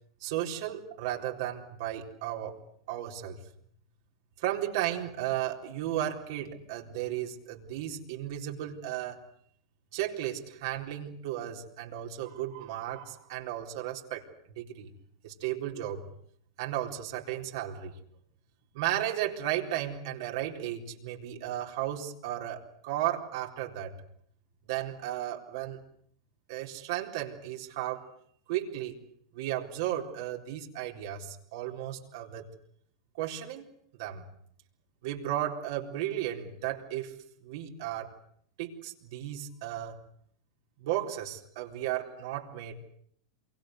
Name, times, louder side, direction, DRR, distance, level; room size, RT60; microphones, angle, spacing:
voice 1, 0.2-2.6 2.9-3.4 4.4-9.2 9.9-14.9 15.2-16.1 16.6-18.0 18.7-24.0 24.7-25.8 26.5-28.1 28.5-29.0 29.3-32.4 33.2-33.6 33.9-34.2 35.0-37.2 37.4-38.1 38.6-40.0 40.8-42.7, right 12 dB, 65° right, 1 dB, 4.0 m, -34 dB
27.5 x 24.0 x 8.0 m, 0.66 s
hypercardioid pair, 100°, 2 cm